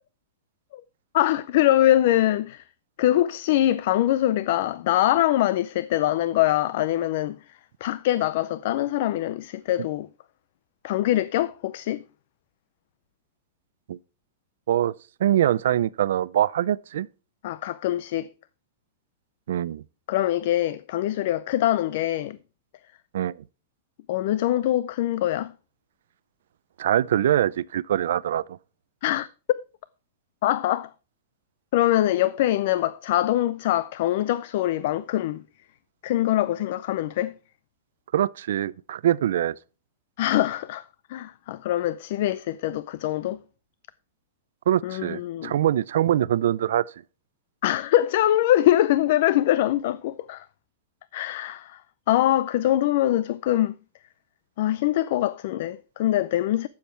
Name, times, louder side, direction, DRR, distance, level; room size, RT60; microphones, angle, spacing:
voice 1, 1.1-2.6 3.0-10.1 10.8-12.0 17.4-18.3 20.1-22.4 24.1-25.5 29.0-29.3 30.4-30.9 31.7-35.4 36.0-37.3 40.2-43.4 44.8-45.5 47.6-50.5 51.1-51.8 52.1-53.8 54.6-56.7, left 13 dB, 50° left, 0.4 m, -23 dB
voice 2, 15.2-17.1 19.5-19.8 23.1-23.4 26.8-28.4 38.1-39.5 44.7-46.9, right 11 dB, 75° right, 0.5 m, -23 dB
13.0 x 7.2 x 4.5 m
supercardioid pair, 165°, 0 cm